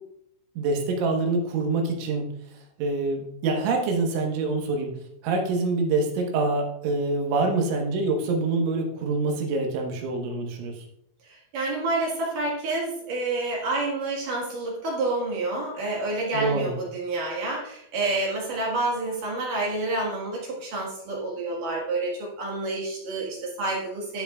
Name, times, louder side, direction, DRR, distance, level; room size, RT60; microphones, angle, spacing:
voice 1, 0.6-2.3 2.8-4.9 5.2-10.8 16.3-16.7, right 3 dB, 80° right, 2 dB, 3.6 m, -25 dB
voice 2, 11.5-24.2, right 2 dB, 60° right, -2 dB, 2.6 m, -28 dB
12.5 x 7.8 x 2.3 m, 0.71 s
omnidirectional pair, 5.4 m